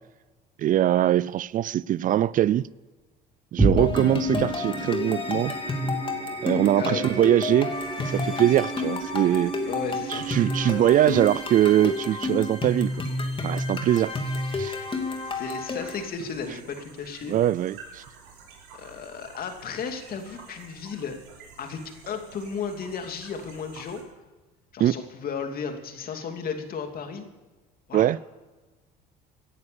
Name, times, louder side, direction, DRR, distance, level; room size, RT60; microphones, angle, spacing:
voice 1, 0.6-2.7 3.5-5.6 6.4-7.8 8.0-9.5 10.1-13.0 13.4-14.2 14.6-14.8 17.3-18.0 24.8-25.0 27.9-28.2, right 12 dB, 45° right, 0.4 m, -22 dB
sound 1, 3.6-14.2, right 2 dB, 20° right, 4.4 m, -32 dB
sound 2, 3.8-16.1, left 3 dB, 25° left, 2.7 m, -31 dB
voice 2, 6.8-7.1 9.7-10.2 15.3-17.4 18.8-21.2 21.6-24.0 24.7-27.3 27.9-28.1, left 6 dB, 50° left, 2.7 m, -34 dB
sound 3, 7.7-24.0, right 5 dB, 85° right, 5.4 m, -50 dB
17.0 x 11.0 x 7.0 m
supercardioid pair, 95°, 19 cm